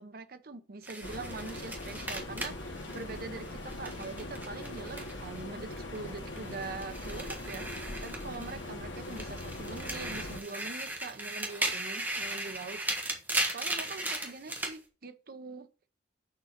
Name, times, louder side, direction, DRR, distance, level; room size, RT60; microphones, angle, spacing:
voice 1, 0.0-12.8 13.5-15.7, right 3 dB, 50° right, 0.7 m, -43 dB
sound 1, 0.8-5.4 5.7-8.7 9.0-14.8, right 1 dB, 10° right, 1.3 m, -37 dB
sound 2, 1.0-10.4, left 1 dB, 75° left, 1.4 m, -41 dB
6.6 x 3.9 x 5.9 m
head